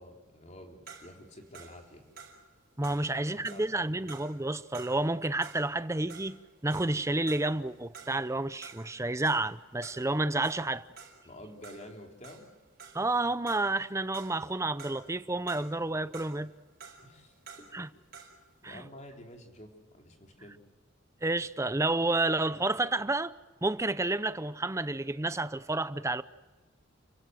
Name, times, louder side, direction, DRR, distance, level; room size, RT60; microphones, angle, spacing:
voice 1, 0.0-2.0 2.9-3.0 3.3-4.0 11.2-12.5 17.0-18.0 18.6-20.6, left 1 dB, 35° left, 3.6 m, -50 dB
sound 1, 0.9-5.8 6.1-13.2 13.5-15.2 15.5-18.5, right 5 dB, 45° right, 5.0 m, -51 dB
voice 2, 2.8-6.4 6.6-10.9 12.9-16.5 17.7-17.9 18.6-18.8 21.2-23.3 23.6-26.2, right 2 dB, 15° right, 0.6 m, -30 dB
30.0 x 16.5 x 7.7 m
head